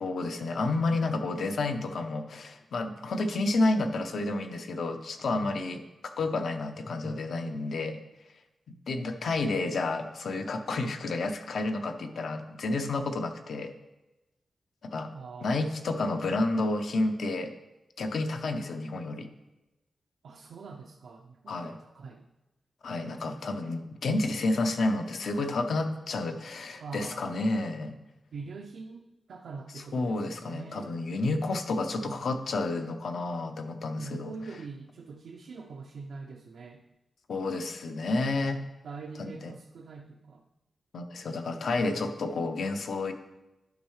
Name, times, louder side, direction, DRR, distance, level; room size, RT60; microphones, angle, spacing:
voice 1, 0.0-5.8 6.2-8.0 8.9-13.7 14.9-15.1 15.4-17.5 18.0-19.3 21.5-21.8 22.8-28.0 29.7-34.3 37.3-38.6 39.2-39.5 40.9-43.1, left 2 dB, 70° left, 6 dB, 0.7 m, -30 dB
voice 2, 15.1-15.6 20.2-22.3 23.3-23.6 26.8-27.2 28.3-31.0 32.0-32.3 34.0-36.8 38.8-40.4, right 4 dB, 85° right, 1 dB, 0.5 m, -44 dB
11.5 x 5.4 x 3.2 m, 1.0 s
wide cardioid pair, 135°, 0 cm